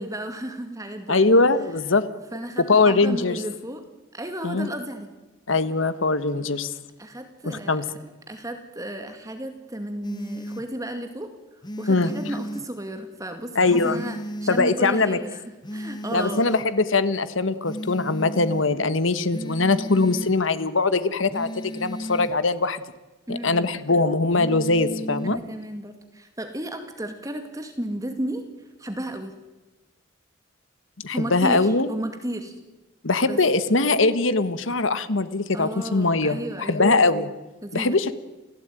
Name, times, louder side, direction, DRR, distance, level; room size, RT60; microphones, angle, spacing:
voice 1, 0.0-1.3 2.3-3.8 4.1-5.1 7.0-11.3 11.8-15.4 15.7-16.5 23.3-23.7 25.2-28.5 28.8-29.3 31.1-32.5 33.3-33.4 35.5-36.9 37.6-38.0, right 1 dB, 15° right, 7 dB, 2.2 m, -33 dB
voice 2, 1.1-2.0 2.6-3.4 4.4-4.7 5.5-6.7 7.4-7.8 11.9-12.1 13.5-14.0 14.5-15.2 16.1-22.8 23.3-25.4 31.0-31.9 33.0-37.3 37.7-38.1, left 3 dB, 80° left, 13 dB, 1.5 m, -21 dB
sound 1, 10.0-10.6 11.6-12.6 13.6-14.7 15.6-16.7 17.6-18.7 19.3-20.3 21.3-22.3 24.3-25.4, equal, 20° left, 1.1 m, -34 dB
28.5 x 16.5 x 9.2 m, 1.1 s
head